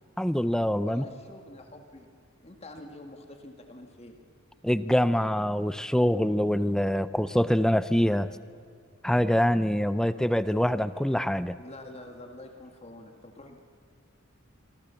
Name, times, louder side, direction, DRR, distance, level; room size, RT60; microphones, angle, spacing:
voice 1, 0.2-1.0 4.6-8.3 9.0-11.6, equal, 5° left, 14 dB, 0.5 m, -25 dB
voice 2, 0.8-2.1 2.4-4.2 9.9-10.3 11.6-13.6, left 1 dB, 30° left, 4 dB, 1.9 m, -46 dB
27.5 x 24.5 x 7.0 m, 2.3 s
head